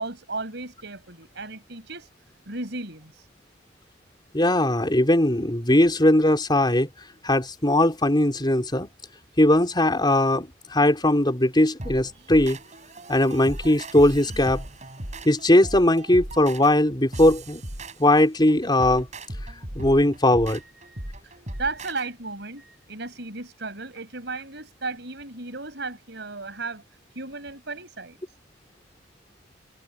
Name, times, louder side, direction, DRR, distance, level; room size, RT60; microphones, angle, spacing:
voice 1, 0.0-2.1 2.5-3.3 12.1-12.3 20.6-26.8 27.1-28.2, right 3 dB, 60° right, 6.3 m, -35 dB
voice 2, 4.3-6.9 7.2-8.9 9.4-12.6 13.1-14.6 15.2-17.6 18.0-19.1 19.7-20.6, left 1 dB, 25° left, 4.0 m, -19 dB
sound 1, 11.8-22.1, right 1 dB, 40° right, 5.0 m, -37 dB
head